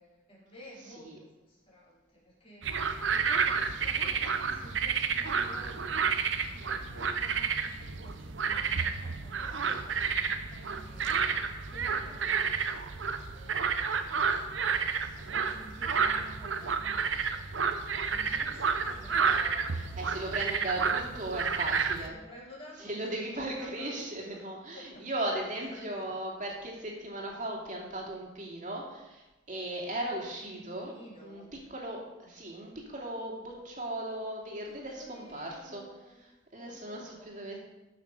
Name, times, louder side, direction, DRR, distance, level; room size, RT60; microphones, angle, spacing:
voice 1, 0.0-6.0 6.5-12.7 13.3-14.0 15.1-17.2 18.0-20.8 22.0-24.1 24.7-25.0 25.6-26.1 30.4-31.5 34.7-36.2 36.5-37.6, equal, 30° left, -7 dB, 4.7 m, -52 dB
sound 1, 2.6-22.1, right 6 dB, 80° right, 0.8 m, -30 dB
voice 2, 19.8-22.1 22.8-30.9 31.2-31.4 31.7-35.8 36.5-37.6, right 1 dB, 40° right, -2 dB, 2.6 m, -37 dB
13.0 x 6.6 x 5.5 m, 1.0 s
head